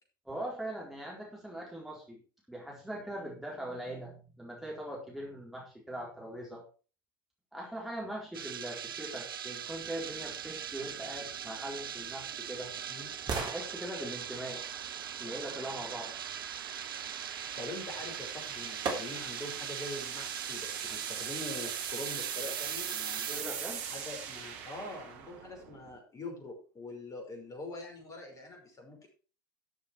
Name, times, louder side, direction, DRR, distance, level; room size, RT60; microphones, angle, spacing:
voice 1, 0.3-2.2 2.5-6.6 7.5-12.7 13.3-14.6 15.2-16.1 23.3-23.8, right 1 dB, ahead, -3 dB, 4.1 m, -41 dB
sound 1, 8.3-23.4, right 9 dB, 80° right, 0.4 m, -41 dB
sound 2, 9.7-26.0, right 8 dB, 55° right, 1.8 m, -43 dB
voice 2, 17.6-23.5 23.9-29.1, left 2 dB, 30° left, 2 dB, 5.6 m, -44 dB
sound 3, 18.8-19.5 20.0-20.1, right 4 dB, 35° right, 3.7 m, -41 dB
14.0 x 7.4 x 4.6 m, 0.37 s
figure-of-eight pair, 80°, 12 cm